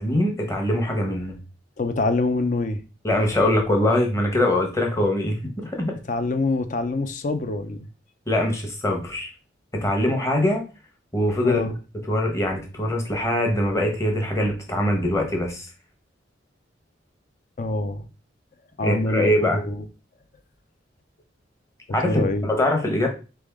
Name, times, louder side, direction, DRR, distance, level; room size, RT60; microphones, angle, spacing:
voice 1, 0.0-1.4 3.0-5.9 8.3-9.3 9.7-10.6 11.1-11.7 12.0-15.7 18.8-19.6 21.9-23.1, left 1 dB, 15° left, 1.0 m, -23 dB
voice 2, 1.8-2.8 6.1-7.8 11.4-11.7 17.6-18.0 18.8-19.3 19.7-19.8 22.0-22.5, left 2 dB, 40° left, 0.5 m, -25 dB
4.0 x 3.5 x 3.5 m
head